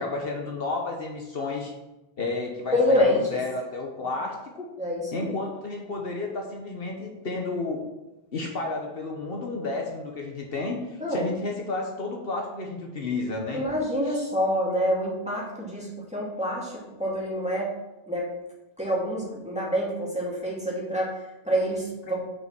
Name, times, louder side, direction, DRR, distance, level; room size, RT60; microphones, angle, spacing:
voice 1, 0.0-1.7 2.2-4.7 5.1-7.8 8.3-13.6 14.1-14.2 22.1-22.2, left 3 dB, 65° left, 1 dB, 1.3 m, -32 dB
voice 2, 2.7-3.4 4.8-5.4 11.0-11.3 13.5-17.7 18.1-18.3 18.8-21.1 21.4-22.2, equal, 5° right, -5 dB, 2.3 m, -26 dB
6.2 x 5.4 x 6.1 m, 0.98 s
omnidirectional pair, 1.0 m